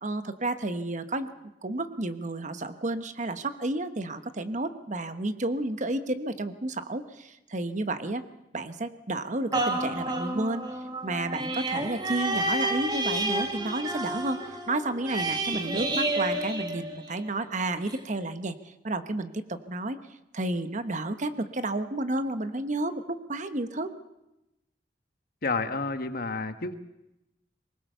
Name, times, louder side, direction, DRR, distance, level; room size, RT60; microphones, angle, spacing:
voice 1, 0.0-1.3 1.6-8.2 8.5-10.6 11.0-14.4 14.7-18.5 18.8-20.0 20.3-23.9, right 2 dB, 45° right, 10 dB, 1.1 m, -31 dB
sound 1, 9.5-17.4 17.9-18.0, right 2 dB, 25° right, 2.0 m, -30 dB
voice 2, 25.4-26.7, left 3 dB, 55° left, 8 dB, 1.4 m, -30 dB
22.5 x 20.0 x 6.9 m, 0.90 s
head